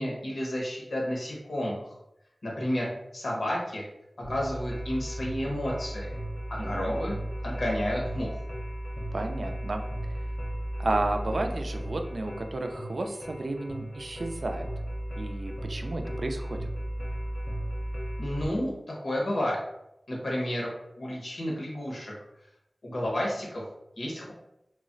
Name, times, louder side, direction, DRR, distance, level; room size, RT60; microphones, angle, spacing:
voice 1, 0.0-1.9 2.4-3.8 4.2-6.1 6.5-7.2 7.4-8.4 18.2-19.6 20.1-20.7 21.0-22.1 22.8-23.6 24.0-24.3, equal, 90° left, -3 dB, 0.9 m, -31 dB
sound 1, 4.2-18.5, right 1 dB, 30° left, 0.6 m, -35 dB
voice 2, 6.6-7.0 9.1-9.8 10.8-14.7 15.2-16.7, right 2 dB, 75° right, 4 dB, 0.3 m, -32 dB
2.4 x 2.0 x 3.8 m, 0.83 s
wide cardioid pair, 55°, 0 cm